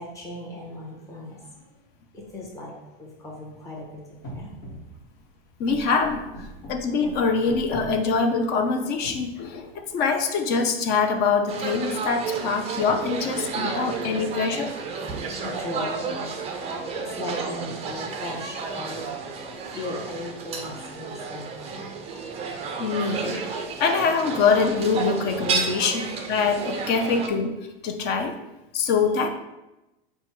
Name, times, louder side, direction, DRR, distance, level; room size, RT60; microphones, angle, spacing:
voice 1, 0.0-1.8 2.1-4.6 15.0-21.9 25.8-25.9, left 1 dB, 10° left, -5 dB, 1.0 m, -38 dB
sound 1, 4.2-5.2 5.7-8.1 8.5-10.0, equal, 60° left, 1.2 m, -40 dB
voice 2, 5.6-14.7 22.8-23.5 23.8-27.5 27.8-28.3 28.7-29.3, left 5 dB, 35° left, 5 dB, 0.5 m, -24 dB
sound 2, 11.5-27.3, right 5 dB, 20° right, 0.4 m, -32 dB
4.3 x 2.3 x 4.4 m, 0.99 s
hypercardioid pair, 125°, 29 cm